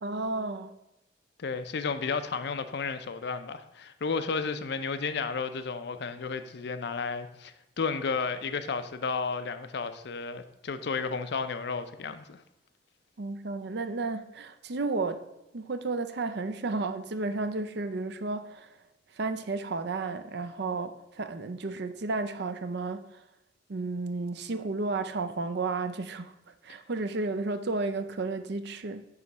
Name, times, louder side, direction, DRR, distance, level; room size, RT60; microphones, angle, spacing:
voice 1, 0.0-0.7 13.2-15.2 15.5-18.7 19.1-23.1 23.7-26.3 26.6-29.0, right 3 dB, 65° right, 0.6 m, -32 dB
voice 2, 1.4-12.4, left 5 dB, 65° left, 0.6 m, -32 dB
9.4 x 3.2 x 5.9 m
head